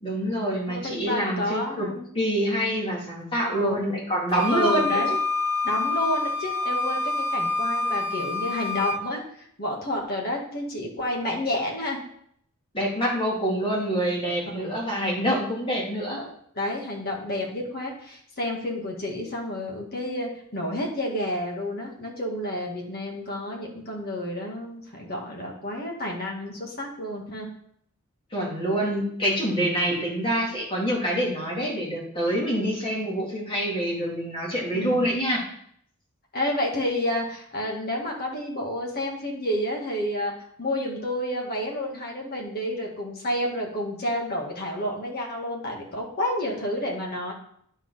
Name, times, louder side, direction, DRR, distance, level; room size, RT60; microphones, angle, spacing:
voice 1, 0.0-1.9 2.1-5.0 12.7-16.2 28.3-35.4, equal, 25° left, -3 dB, 2.8 m, -26 dB
voice 2, 0.7-2.1 3.4-3.8 4.5-5.1 5.6-12.0 14.5-14.8 16.2-27.5 34.7-35.0 36.3-47.3, left 1 dB, 45° left, -1 dB, 2.0 m, -30 dB
Wind instrument woodwind instrument, 4.3-9.0, left 3 dB, 70° right, 1.0 m, -27 dB
10.5 x 4.6 x 5.7 m, 0.67 s
head